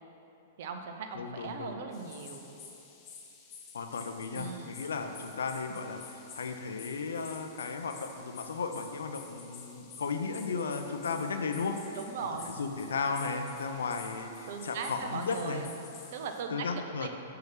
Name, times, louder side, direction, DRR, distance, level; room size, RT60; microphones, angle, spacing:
voice 1, 0.6-2.5 4.3-4.7 11.9-12.6 14.5-15.7 16.1-16.7 17.0-17.1, right 5 dB, 60° right, 5 dB, 0.6 m, -38 dB
voice 2, 1.1-1.7 3.7-12.0 12.6-15.6 16.5-17.1, left 4 dB, 75° left, 6 dB, 0.5 m, -35 dB
sound 1, 1.9-16.4, left 5 dB, 35° left, 0.8 m, -51 dB
7.3 x 2.9 x 5.8 m, 2.9 s
hypercardioid pair, 110°, 0 cm